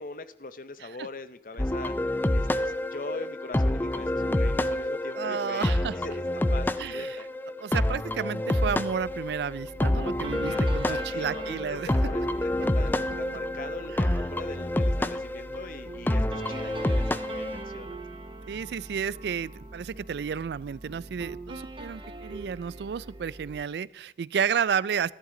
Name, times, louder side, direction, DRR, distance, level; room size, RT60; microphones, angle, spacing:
voice 1, 0.0-2.0 2.3-7.3 10.5-18.0, left 3 dB, 50° left, 13 dB, 0.6 m, -42 dB
sound 1, 1.6-17.6, left 1 dB, 10° left, 0.3 m, -28 dB
voice 2, 5.2-5.9 6.8-7.2 7.6-11.9 18.5-25.1, right 7 dB, 70° right, 21 dB, 0.3 m, -31 dB
sound 2, 9.0-23.6, right 2 dB, 30° right, 0.9 m, -42 dB
13.5 x 11.0 x 3.8 m, 0.85 s
head